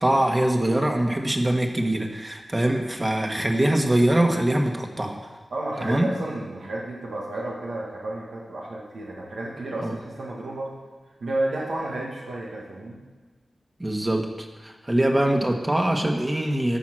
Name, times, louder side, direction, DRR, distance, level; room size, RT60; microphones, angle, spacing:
voice 1, 0.0-5.2 5.8-6.1 9.8-10.0 13.8-16.8, right 1 dB, 20° right, 2 dB, 1.5 m, -23 dB
voice 2, 5.5-10.7 11.2-13.0, right 1 dB, 85° right, -4 dB, 1.9 m, -31 dB
14.0 x 5.9 x 6.2 m, 1.3 s
wide cardioid pair, 70°, 0 cm